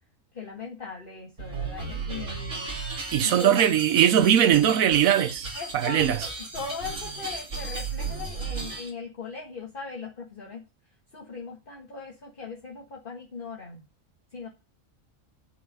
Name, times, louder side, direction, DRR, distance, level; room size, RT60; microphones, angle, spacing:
voice 1, 0.3-2.7 3.2-3.7 5.5-10.6 11.1-13.8 14.3-14.5, left 5 dB, 40° left, 1.8 m, -39 dB
sound 1, 1.4-8.9, right 4 dB, 65° right, 3.0 m, -35 dB
voice 2, 3.1-6.3, right 10 dB, 85° right, 1.2 m, -21 dB
9.8 x 5.6 x 6.5 m
omnidirectional pair, 1.4 m